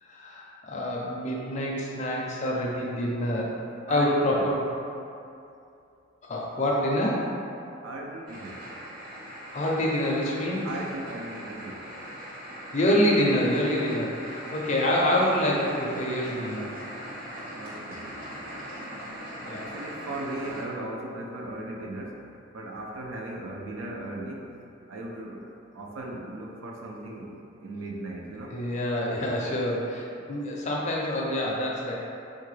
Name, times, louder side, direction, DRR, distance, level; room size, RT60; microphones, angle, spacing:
voice 1, 0.0-3.5 3.9-4.6 6.2-7.3 9.5-10.7 12.7-16.7 19.4-19.7 28.5-32.0, left 1 dB, 35° left, -3 dB, 0.4 m, -26 dB
voice 2, 3.9-4.5 7.8-8.7 10.6-11.9 17.6-18.2 19.6-24.5 24.9-28.6, right 1 dB, 75° right, 0 dB, 0.4 m, -37 dB
sound 1, 8.3-20.6, equal, 45° right, 0.7 m, -40 dB
3.6 x 2.2 x 3.1 m, 2.6 s
head